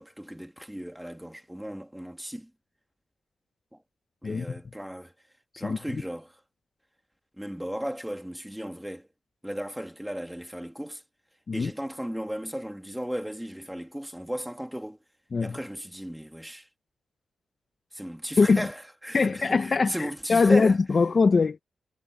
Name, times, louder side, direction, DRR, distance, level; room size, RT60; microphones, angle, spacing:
voice 1, 0.0-2.5 4.2-5.1 5.6-6.3 7.4-9.1 9.4-11.0 11.5-15.0 15.4-16.7 17.9-20.7, equal, 5° right, 2.7 m, -35 dB
voice 2, 5.6-6.0 11.5-11.7 15.3-15.6 18.4-18.7 19.1-21.6, left 4 dB, 45° left, 1.1 m, -22 dB
cardioid pair, 60°, 0 cm